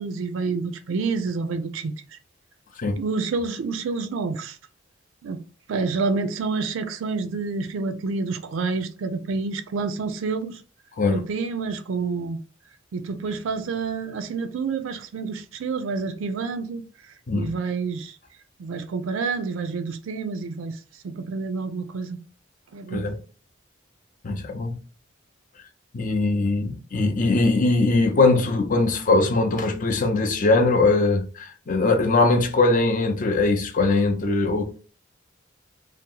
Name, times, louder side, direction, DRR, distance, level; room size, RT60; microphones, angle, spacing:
voice 1, 0.0-2.2 3.0-4.6 5.2-5.4 5.7-10.6 11.1-12.4 12.9-16.8 17.3-18.2 18.6-20.8 21.0-22.2 22.7-23.1, right 4 dB, 70° right, 0.4 m, -28 dB
voice 2, 24.2-24.8 25.9-34.6, left 3 dB, 40° left, 0.5 m, -21 dB
2.8 x 2.0 x 3.7 m
head